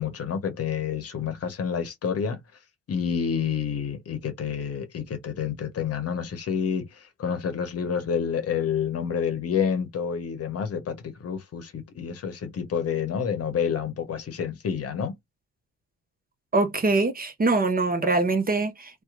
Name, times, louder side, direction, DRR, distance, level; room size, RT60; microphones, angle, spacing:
voice 1, 0.0-2.4 2.9-15.1, left 7 dB, 50° left, 0.9 m, -29 dB
voice 2, 16.5-19.0, right 3 dB, 30° right, 0.8 m, -23 dB
2.7 x 2.2 x 2.4 m
hypercardioid pair, 40°, 31 cm